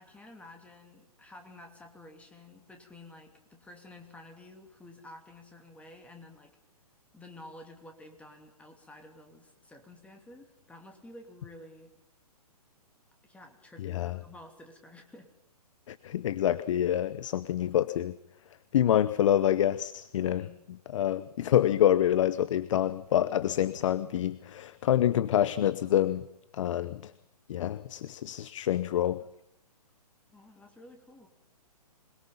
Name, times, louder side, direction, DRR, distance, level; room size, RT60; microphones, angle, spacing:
voice 1, 0.0-6.6 7.1-11.9 13.2-15.3 20.1-20.7 30.3-31.3, left 1 dB, 5° left, 4 dB, 2.8 m, -51 dB
voice 2, 13.8-14.2 15.9-18.1 18.7-20.4 20.9-26.2 26.5-27.1 27.5-29.2, left 11 dB, 50° left, 16 dB, 0.9 m, -27 dB
26.0 x 22.0 x 5.6 m, 0.82 s
hypercardioid pair, 135°, 20 cm